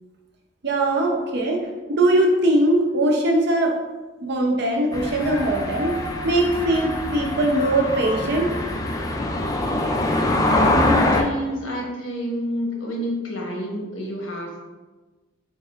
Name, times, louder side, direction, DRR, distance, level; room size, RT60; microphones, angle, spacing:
voice 1, 0.6-1.6 1.9-3.8 4.2-6.0 6.2-8.5, right 1 dB, 60° right, 1 dB, 0.6 m, -20 dB
sound 1, 4.9-11.2, left 1 dB, 20° left, 0.3 m, -24 dB
Dog, 5.1-10.3 10.8-10.9, left 1 dB, 60° left, 0.7 m, -37 dB
voice 2, 10.3-14.6, equal, 90° left, -1 dB, 1.0 m, -28 dB
4.0 x 3.4 x 2.4 m, 1.2 s
head